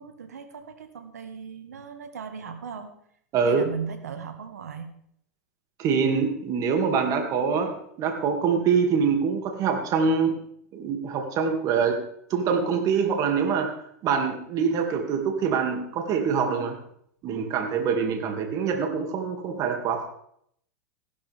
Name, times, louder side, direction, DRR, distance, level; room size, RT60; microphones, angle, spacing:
voice 1, 0.0-2.9 3.4-4.9, right 6 dB, 90° right, 8 dB, 1.7 m, -37 dB
voice 2, 3.3-3.7 5.8-10.4 10.7-12.0 12.3-13.7 14.0-16.8 17.2-20.1, right 6 dB, 45° right, 4 dB, 2.5 m, -24 dB
15.5 x 12.5 x 3.6 m, 0.68 s
hypercardioid pair, 110°, 8 cm